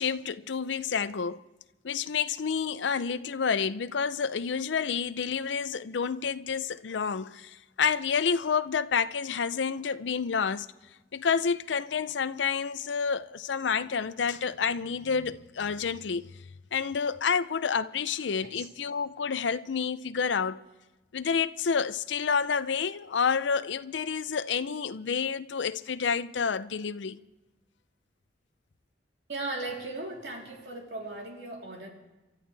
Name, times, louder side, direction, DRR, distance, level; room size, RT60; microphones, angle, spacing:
voice 1, 0.0-1.4 1.8-10.7 11.1-16.2 16.7-20.6 21.1-27.2, left 6 dB, 90° left, 0.5 m, -29 dB
voice 2, 29.3-31.9, right 2 dB, 70° right, 3.5 m, -37 dB
28.5 x 13.0 x 3.3 m
head